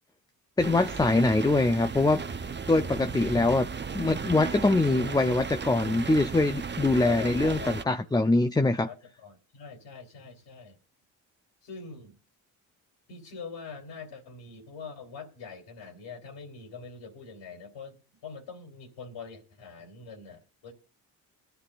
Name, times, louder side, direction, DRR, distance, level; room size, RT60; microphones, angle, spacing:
voice 1, 0.6-2.2 2.7-3.7 3.9-8.9, left 2 dB, 10° left, 0.5 m, -23 dB
sound 1, 0.6-7.8, right 5 dB, 25° right, 0.8 m, -35 dB
voice 2, 7.0-8.1 8.8-10.8 11.6-12.2 13.1-20.7, left 5 dB, 65° left, 3.3 m, -43 dB
21.5 x 11.5 x 2.5 m
hypercardioid pair, 45°, 47 cm